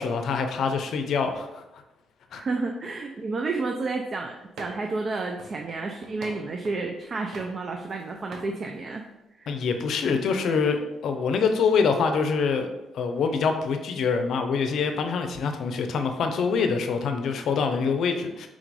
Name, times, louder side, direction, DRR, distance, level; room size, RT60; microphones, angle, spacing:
voice 1, 0.0-1.6 2.3-2.4 9.5-12.7 12.9-18.5, left 5 dB, 70° left, 6 dB, 0.5 m, -25 dB
voice 2, 2.4-9.0 9.4-9.5, right 3 dB, 45° right, 3 dB, 0.4 m, -31 dB
sound 1, 4.6-5.0 5.4-6.9 7.3-8.0 8.3-8.6, right 2 dB, 70° right, 0.7 m, -44 dB
3.8 x 2.5 x 4.6 m, 0.97 s
cardioid pair, 90°, 0 cm